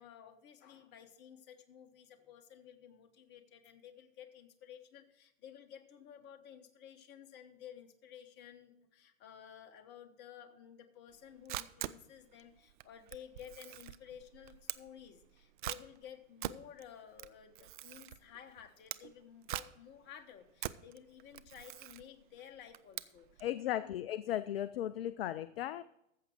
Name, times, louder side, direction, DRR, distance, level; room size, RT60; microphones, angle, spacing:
voice 1, 0.0-23.9, left 9 dB, 25° left, 6 dB, 1.3 m, -54 dB
Camera, 11.1-23.5, right 13 dB, 40° right, 0.5 m, -45 dB
voice 2, 23.4-25.8, left 12 dB, 50° left, 15 dB, 0.5 m, -36 dB
14.0 x 7.6 x 4.5 m, 0.81 s
figure-of-eight pair, 105°, 40 cm